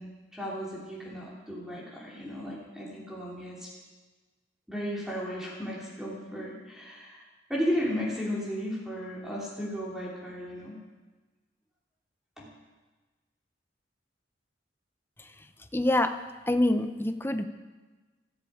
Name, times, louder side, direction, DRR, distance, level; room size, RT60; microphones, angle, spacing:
voice 1, 0.0-3.7 4.7-10.8 12.4-12.5, equal, 5° right, -5 dB, 3.2 m, -35 dB
voice 2, 15.7-16.1 16.5-17.4, left 1 dB, 10° left, 8 dB, 0.8 m, -25 dB
19.5 x 14.0 x 5.0 m, 1.3 s
head